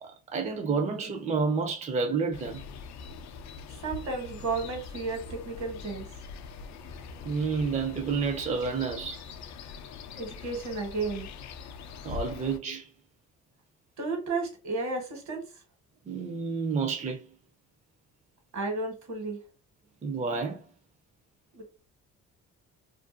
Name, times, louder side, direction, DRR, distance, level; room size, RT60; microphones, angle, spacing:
voice 1, 0.0-2.6 7.2-9.2 12.0-12.9 16.1-17.3 20.0-20.7, right 5 dB, 25° right, 0.4 m, -30 dB
sound 1, 2.3-12.6, left 5 dB, 65° left, 0.4 m, -43 dB
voice 2, 3.8-6.1 10.2-11.3 14.0-15.4 18.5-19.4 21.5-21.6, right 3 dB, 70° right, 1.2 m, -33 dB
2.5 x 2.2 x 2.5 m
cardioid pair, 90°, 30 cm